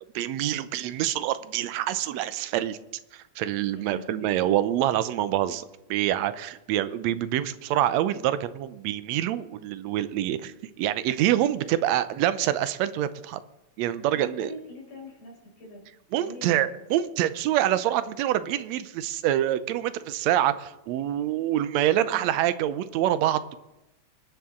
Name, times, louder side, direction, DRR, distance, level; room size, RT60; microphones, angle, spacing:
voice 1, 0.2-2.8 3.1-13.4 13.8-14.5 16.1-23.6, right 12 dB, 75° right, 13 dB, 1.8 m, -26 dB
voice 2, 3.7-4.3 14.1-15.8 16.2-16.8 21.9-22.3, left 1 dB, 75° left, -2 dB, 6.2 m, -44 dB
25.5 x 10.5 x 3.7 m, 0.93 s
omnidirectional pair, 3.4 m